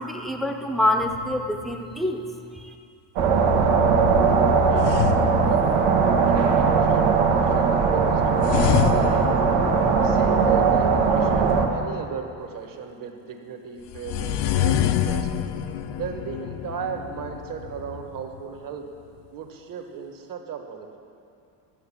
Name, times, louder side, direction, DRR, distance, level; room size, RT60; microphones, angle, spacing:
voice 1, 0.0-2.3 2.6-2.7, left 1 dB, ahead, 5 dB, 0.7 m, -25 dB
sound 1, 1.0-2.0 3.9-6.2 8.4-10.6 13.9-18.6, left 10 dB, 55° left, 0.6 m, -28 dB
sound 2, 3.2-11.7, right 5 dB, 90° right, 1.6 m, -19 dB
voice 2, 4.3-4.9 5.4-5.6 6.2-9.3 10.0-15.3 15.9-18.9 19.3-21.0, right 7 dB, 40° right, 4 dB, 1.4 m, -36 dB
13.0 x 6.5 x 8.6 m, 2.5 s
cardioid pair, 125°, 50 cm